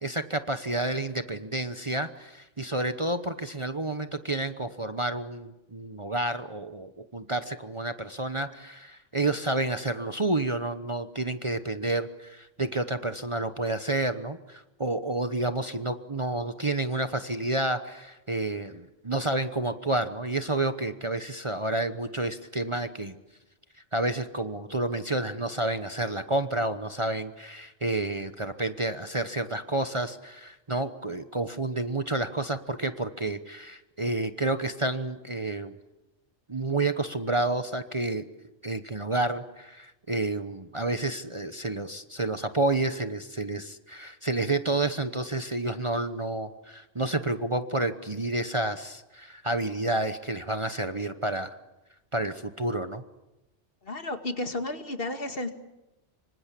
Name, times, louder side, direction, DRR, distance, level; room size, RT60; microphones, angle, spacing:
voice 1, 0.0-23.1 23.9-35.8 36.5-38.3 38.6-51.6 52.1-53.0, right 2 dB, 25° right, 9 dB, 1.0 m, -30 dB
voice 2, 53.8-55.5, left 2 dB, 50° left, 7 dB, 2.2 m, -32 dB
26.0 x 25.0 x 8.4 m, 0.98 s
omnidirectional pair, 1.2 m